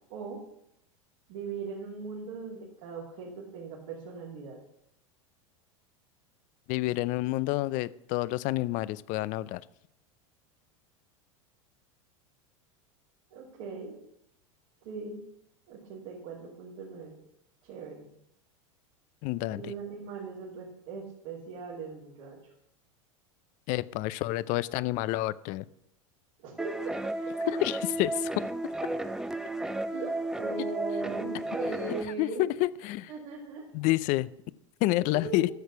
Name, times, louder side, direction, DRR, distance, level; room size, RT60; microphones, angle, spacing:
voice 1, 0.1-0.4 1.3-4.6 13.3-14.0 14.8-15.2 15.7-17.2 17.6-18.1 19.5-22.4 26.4-27.5 29.9-32.5 33.1-33.7 35.1-35.5, right 4 dB, 65° right, -5 dB, 3.0 m, -39 dB
voice 2, 6.7-9.6 19.2-19.6 23.7-25.7 27.5-28.4 32.2-33.1 33.7-34.3 34.8-35.5, left 18 dB, 50° left, 18 dB, 0.5 m, -29 dB
sound 1, 26.6-32.0, right 2 dB, 5° right, 0.6 m, -33 dB
13.0 x 6.5 x 5.9 m, 0.79 s
hypercardioid pair, 100°, 17 cm